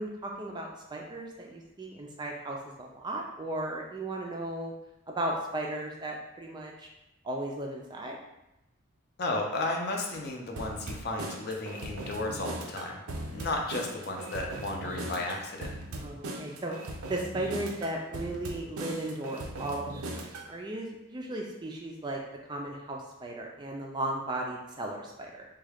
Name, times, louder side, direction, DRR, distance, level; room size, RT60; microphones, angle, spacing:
voice 1, 0.0-4.7 5.1-6.9 7.2-8.2 15.9-16.7 17.1-22.2 22.5-25.5, right 1 dB, 20° right, 0 dB, 0.3 m, -36 dB
voice 2, 9.2-13.0 13.3-15.7, left 2 dB, 50° left, 1 dB, 0.5 m, -33 dB
sound 1, 10.6-20.5, right 1 dB, 90° right, 0.5 m, -39 dB
3.6 x 2.3 x 3.4 m, 0.89 s
head